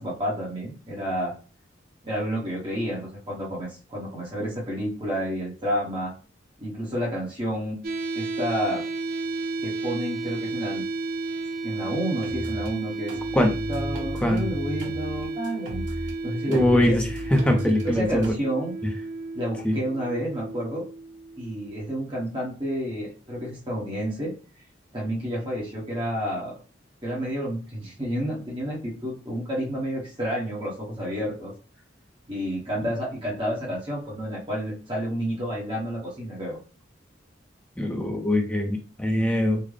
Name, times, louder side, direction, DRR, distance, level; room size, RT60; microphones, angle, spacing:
voice 1, 0.0-1.3 2.0-6.1 6.6-7.8 8.1-8.8 9.6-10.8 11.6-15.8 16.2-17.0 17.6-18.8 19.3-20.9 21.4-24.3 24.9-26.6 27.0-31.5 32.3-36.6, equal, 25° right, -5 dB, 1.0 m, -30 dB
sound 1, 7.8-21.8, right 3 dB, 50° right, 0.4 m, -33 dB
sound 2, 12.2-12.7 13.1-16.1 16.5-18.3, left 1 dB, 80° right, 1.3 m, -34 dB
voice 2, 16.5-17.0 17.5-18.3 19.6-19.8 37.8-39.6, left 1 dB, 5° left, 3 dB, 0.5 m, -22 dB
3.8 x 2.1 x 3.2 m, 0.36 s
head